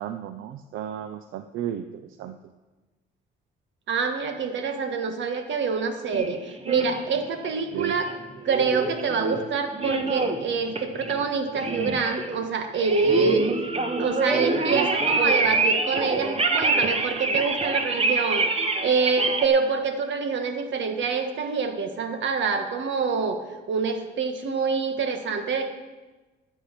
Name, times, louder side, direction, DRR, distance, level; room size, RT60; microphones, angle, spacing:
voice 1, 0.0-2.4 7.7-8.0, right 10 dB, 85° right, 9 dB, 0.6 m, -33 dB
voice 2, 3.9-8.1 8.4-13.4 14.0-18.5 18.8-23.4 23.7-25.7, right 5 dB, 70° right, 6 dB, 1.6 m, -26 dB
sound 1, 6.1-7.0 7.8-9.4 9.7-10.5 10.7-11.3 11.5-12.4 12.7-19.5, right 3 dB, 30° right, 1.3 m, -26 dB
13.0 x 8.4 x 5.9 m, 1.2 s
cardioid pair, 90°, 20 cm